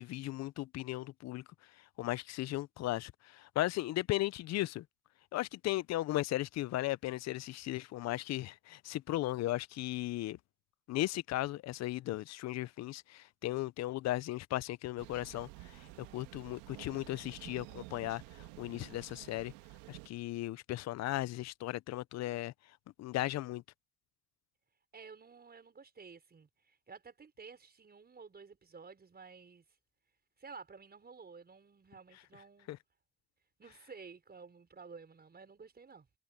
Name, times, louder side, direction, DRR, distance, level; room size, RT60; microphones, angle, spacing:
voice 1, 0.0-1.4 2.0-4.8 5.3-10.4 10.9-15.5 16.1-18.2 18.6-19.5 19.9-22.5 23.0-23.6 32.7-32.8, left 16 dB, 60° left, 0.8 m, -36 dB
Thunder, 15.0-20.1, right 21 dB, 85° right, 2.1 m, -51 dB
voice 2, 15.9-16.3 24.9-29.6 30.4-32.7 33.6-36.1, right 5 dB, 35° right, 5.5 m, -53 dB
supercardioid pair, 70°, 29 cm